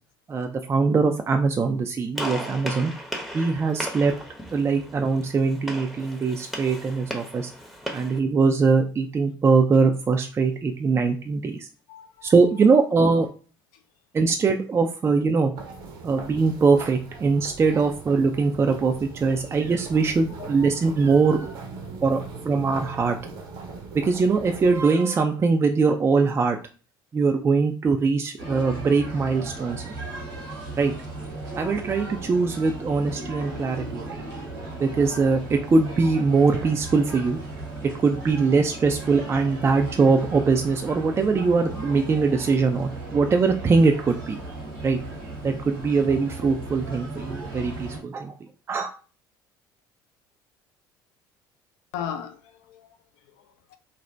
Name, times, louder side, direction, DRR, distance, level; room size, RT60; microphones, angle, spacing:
voice 1, 0.3-2.9 3.3-4.1 4.5-7.5 7.9-11.7 12.2-13.3 14.1-15.5 16.0-21.6 22.0-22.2 22.4-23.2 23.9-26.6 27.1-30.0 30.8-30.9 31.6-34.2 34.8-37.4 37.8-44.4 44.8-45.0 45.4-48.3 48.7-48.9, right 4 dB, 25° right, 0.3 m, -22 dB
Gunshot gunfire, 2.1-8.2, equal, ahead, 0.7 m, -36 dB
voice 2, 11.9-12.3 20.4-20.7 21.1-21.2 51.9-53.0 53.4-53.8, left 9 dB, 65° left, 0.5 m, -37 dB
sound 1, 15.5-24.8, right 4 dB, 60° right, 0.8 m, -40 dB
sound 2, 28.4-48.0, right 2 dB, 85° right, 1.3 m, -36 dB
2.7 x 2.1 x 3.2 m
hypercardioid pair, 60°, 11 cm